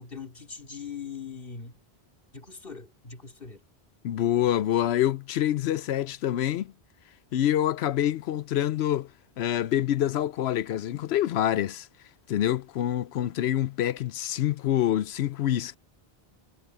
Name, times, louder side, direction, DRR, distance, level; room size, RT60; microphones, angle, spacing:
voice 1, 0.0-1.8 2.3-3.6, left 6 dB, 60° left, 3.0 m, -41 dB
voice 2, 4.0-6.7 7.3-9.1 9.4-11.9 12.3-15.8, left 12 dB, 80° left, 0.8 m, -26 dB
omnidirectional pair, 1.1 m